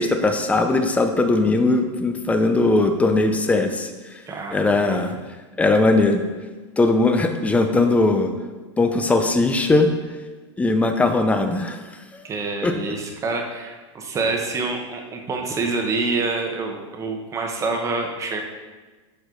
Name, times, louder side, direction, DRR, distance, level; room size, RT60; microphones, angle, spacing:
voice 1, 0.0-3.9 4.5-5.1 5.6-6.2 6.8-8.3 8.8-9.9 10.6-11.8 12.1-12.2 12.6-12.7, left 2 dB, 10° left, 6 dB, 0.6 m, -19 dB
voice 2, 4.3-5.0 12.2-18.4, right 3 dB, 20° right, 2 dB, 1.0 m, -27 dB
7.8 x 6.3 x 3.8 m, 1.3 s
supercardioid pair, 145°, 15 cm